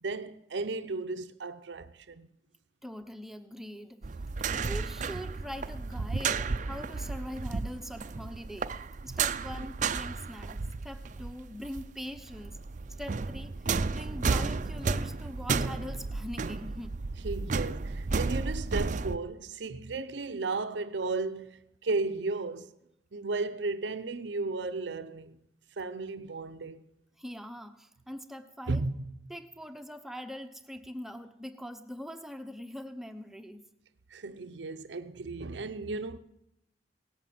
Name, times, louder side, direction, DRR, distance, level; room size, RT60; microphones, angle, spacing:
voice 1, 0.0-2.3 9.1-9.7 17.2-22.7 23.1-25.4 25.8-26.9 28.7-28.9 34.1-36.2, right 3 dB, 80° right, 0.7 m, -34 dB
voice 2, 2.8-4.1 4.5-12.6 13.0-17.0 27.2-28.8 29.3-33.7, equal, ahead, 0.9 m, -42 dB
sound 1, 4.0-11.9 12.1-19.2, right 4 dB, 45° right, 0.5 m, -33 dB
17.5 x 9.3 x 7.7 m
head